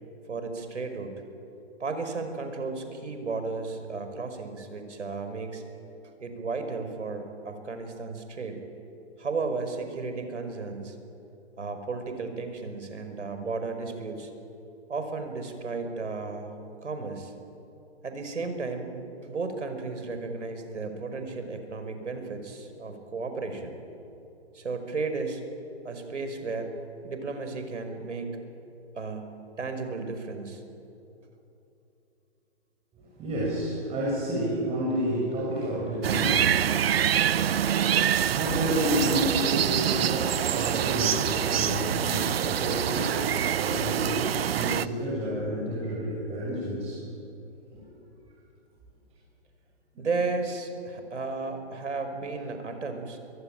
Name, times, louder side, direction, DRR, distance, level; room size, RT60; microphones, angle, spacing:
voice 1, 0.3-1.1 1.8-5.6 6.2-8.6 9.2-11.0 11.6-14.3 14.9-17.3 18.0-18.9 19.2-23.8 24.5-25.4 25.8-26.7 27.0-28.3 29.0-30.6 50.0-53.2, right 4 dB, 85° right, 7 dB, 5.3 m, -34 dB
voice 2, 32.9-37.3 38.1-44.2 44.5-47.0 47.7-47.8 49.9-50.1, equal, 15° right, -5 dB, 6.5 m, -30 dB
sound 1, 36.0-44.9, right 9 dB, 55° right, 0.9 m, -25 dB
24.0 x 23.5 x 9.1 m, 2.9 s
hypercardioid pair, 145°, 35 cm